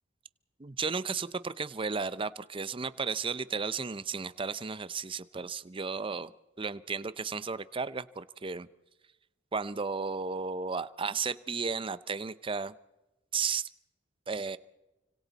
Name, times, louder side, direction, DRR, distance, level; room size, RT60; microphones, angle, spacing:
voice 1, 0.6-6.3 6.6-8.7 9.5-12.7 13.3-13.7 14.3-14.6, right 5 dB, 30° right, 16 dB, 0.6 m, -34 dB
29.5 x 25.5 x 4.1 m, 1.0 s
head